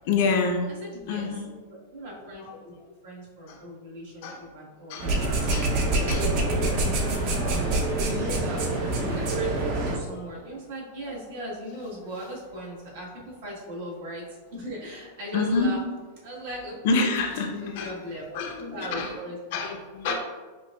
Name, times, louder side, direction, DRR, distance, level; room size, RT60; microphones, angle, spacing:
voice 1, 0.1-0.7 1.1-1.6 2.5-2.6 3.5-3.6 4.2-4.4 4.9-5.1 5.5-8.3 9.9-10.2 10.5-10.6 15.3-15.7 16.8-18.0 18.3-19.2 19.5-20.1, left 4 dB, 60° left, 3 dB, 0.6 m, -29 dB
voice 2, 0.9-1.4 1.7-2.7 3.0-5.5 6.0-7.0 7.4-14.2 14.5-15.8 16.2-17.1 17.6-19.4 20.0-20.1, equal, 70° right, -4 dB, 1.4 m, -38 dB
sound 1, 5.0-10.0, right 2 dB, 50° right, 0.7 m, -25 dB
5.2 x 2.3 x 2.3 m, 1.3 s
hypercardioid pair, 130°, 0 cm